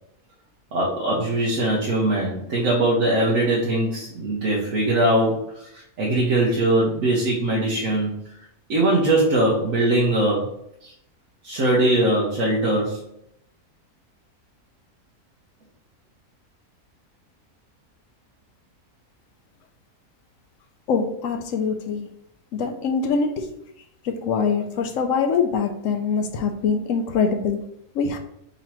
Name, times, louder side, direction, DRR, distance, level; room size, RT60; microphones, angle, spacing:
voice 1, 0.7-8.2 8.7-10.5 10.8-10.9 11.4-13.0, right 1 dB, 65° right, -4 dB, 1.2 m, -21 dB
voice 2, 20.9-22.1 22.5-23.5 24.0-27.6 28.0-28.2, left 5 dB, 70° left, 6 dB, 0.8 m, -23 dB
3.9 x 2.9 x 4.4 m, 0.74 s
omnidirectional pair, 1.6 m